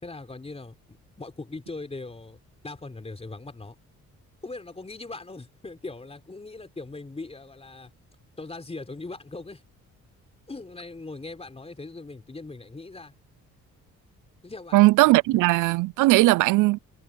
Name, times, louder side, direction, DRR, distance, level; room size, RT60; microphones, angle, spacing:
voice 1, 0.0-3.8 4.4-7.9 8.4-9.6 10.5-13.1 14.4-15.4 16.0-16.1, left 3 dB, 20° left, 4.3 m, -40 dB
voice 2, 14.7-16.8, right 20 dB, 85° right, 0.5 m, -18 dB
cardioid pair, 90°, 30 cm